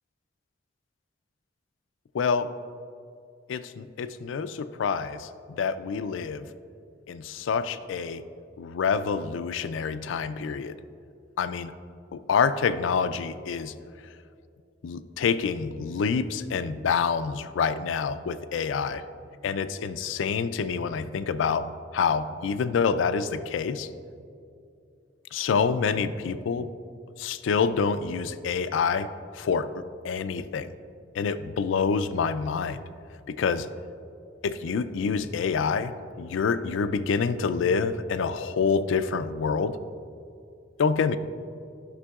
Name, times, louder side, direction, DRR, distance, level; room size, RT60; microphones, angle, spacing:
voice 1, 2.1-2.5 3.5-6.5 7.1-8.2 8.6-10.8 11.4-11.7 12.1-13.7 14.8-19.0 19.4-23.9 25.3-26.7 27.2-29.1 29.3-29.7 30.0-30.7 31.2-32.8 33.3-33.7 34.4-39.8 40.8-41.2, left 5 dB, 85° left, 12 dB, 0.3 m, -27 dB
12.5 x 5.9 x 2.3 m, 2.5 s
head